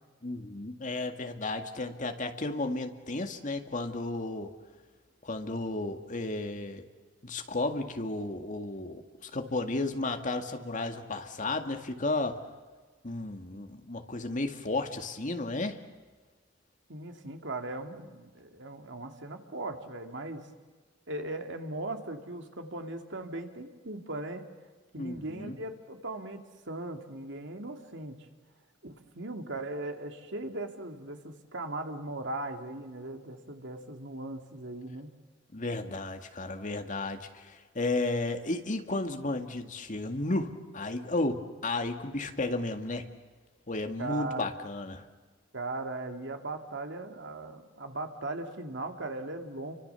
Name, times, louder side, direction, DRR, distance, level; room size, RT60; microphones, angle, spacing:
voice 1, 0.2-4.5 5.2-6.8 7.2-12.4 13.0-15.8 25.0-25.6 35.5-43.1 43.7-45.0, left 2 dB, 40° left, 6 dB, 2.1 m, -33 dB
voice 2, 16.9-20.5 21.1-24.5 24.9-28.3 28.8-35.1 44.0-44.5 45.5-49.7, right 2 dB, 65° right, 5 dB, 2.5 m, -38 dB
29.5 x 25.0 x 7.0 m, 1.4 s
head